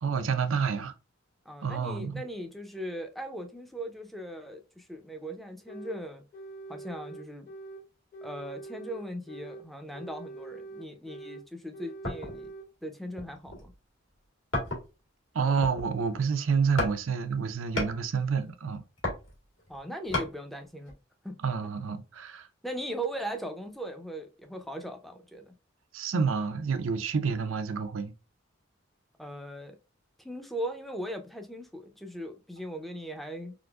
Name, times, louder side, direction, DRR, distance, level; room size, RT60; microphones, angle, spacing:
voice 1, 0.0-0.9 1.6-2.2 15.3-18.8 21.4-22.5 25.9-28.1, right 5 dB, 80° right, 0.5 m, -29 dB
voice 2, 1.5-6.2 6.7-7.5 8.2-12.5 12.8-13.7 19.7-20.9 21.2-21.4 22.6-25.5 29.2-29.8 30.2-33.5, right 1 dB, ahead, 0.5 m, -39 dB
sound 1, 5.7-6.0 6.3-7.8 8.1-9.6 9.9-11.4 11.7-12.7, right 3 dB, 45° left, 1.2 m, -44 dB
sound 2, 12.0-12.5 13.1-13.7 14.5-15.1 15.4-16.1 16.8-17.0 17.3-18.0 18.7-20.3 20.8-20.9, left 1 dB, 70° left, 1.8 m, -33 dB
3.8 x 2.6 x 2.3 m
head